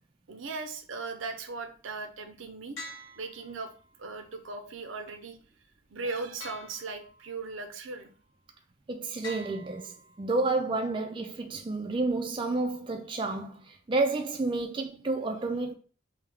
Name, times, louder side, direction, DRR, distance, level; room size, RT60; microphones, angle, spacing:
voice 1, 0.3-2.8 3.2-3.7 4.0-5.4 5.9-8.1, right 3 dB, 75° right, 0.6 m, -38 dB
sound 1, 2.8-4.0 6.4-7.5 9.2-10.5, left 1 dB, 85° left, 1.5 m, -46 dB
voice 2, 8.9-15.7, right 3 dB, 25° right, 0.3 m, -30 dB
3.3 x 2.7 x 3.4 m
head